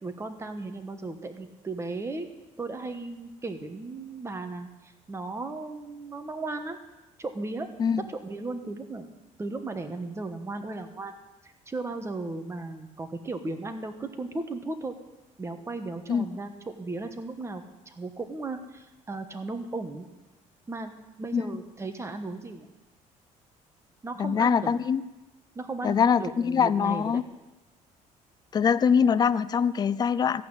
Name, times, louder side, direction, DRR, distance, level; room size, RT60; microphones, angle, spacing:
voice 1, 0.0-2.3 2.6-4.7 5.1-6.8 7.2-7.7 8.1-9.1 9.4-11.1 11.4-14.9 15.4-20.1 20.7-20.9 21.2-22.7 24.0-24.7 25.5-27.2, right 3 dB, 20° right, 7 dB, 1.3 m, -36 dB
voice 2, 24.2-25.0 25.8-27.2 28.5-30.4, left 7 dB, 30° left, 15 dB, 0.4 m, -23 dB
14.5 x 5.9 x 8.8 m, 1.1 s
cardioid pair, 110°, 14 cm